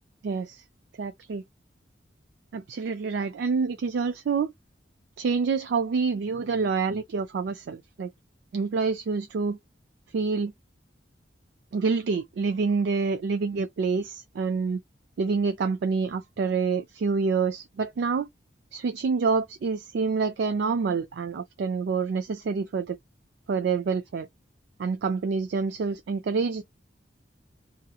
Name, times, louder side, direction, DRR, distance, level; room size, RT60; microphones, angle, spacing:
voice 1, 0.2-0.6 1.0-1.4 2.5-4.5 5.2-8.1 8.5-9.6 10.1-10.5 11.7-14.8 15.2-18.3 18.7-23.0 23.5-24.3 24.8-26.6, right 5 dB, 65° right, 0.3 m, -27 dB
2.8 x 2.5 x 2.3 m
head